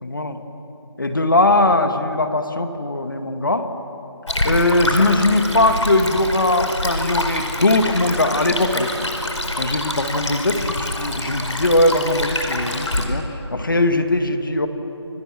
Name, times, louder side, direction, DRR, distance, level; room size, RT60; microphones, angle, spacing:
voice 1, 0.0-0.4 1.0-3.7 4.4-9.0 9.6-13.3 13.5-14.7, left 2 dB, 45° left, 7 dB, 1.9 m, -20 dB
Stream, 4.3-13.0, left 1 dB, 85° left, 4.8 m, -26 dB
29.0 x 22.5 x 7.7 m, 2.9 s
figure-of-eight pair, 175°, 15 cm